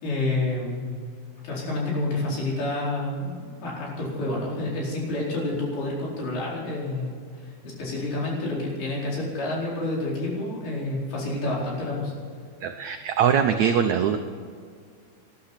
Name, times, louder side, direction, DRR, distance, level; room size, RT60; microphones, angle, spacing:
voice 1, 0.0-0.8 1.4-12.1, left 2 dB, 85° left, -4 dB, 6.4 m, -29 dB
voice 2, 12.6-14.2, right 8 dB, 80° right, 6 dB, 1.6 m, -22 dB
20.0 x 11.5 x 5.9 m, 2.1 s
omnidirectional pair, 4.4 m